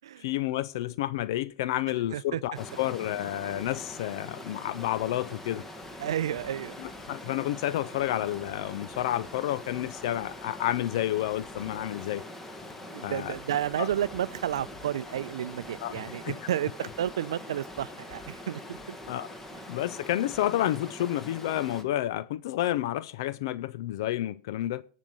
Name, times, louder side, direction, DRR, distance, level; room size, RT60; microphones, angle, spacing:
voice 1, 0.2-5.6 6.8-12.2 13.0-13.4 13.8-13.9 15.8-16.4 19.1-19.3 19.7-24.8, left 13 dB, 65° left, 0.5 m, -30 dB
Stream, 2.5-21.8, left 1 dB, 10° left, 1.5 m, -43 dB
voice 2, 6.0-6.8 12.8-19.0, right 11 dB, 80° right, 0.5 m, -31 dB
17.0 x 6.3 x 5.4 m
hypercardioid pair, 125°, 3 cm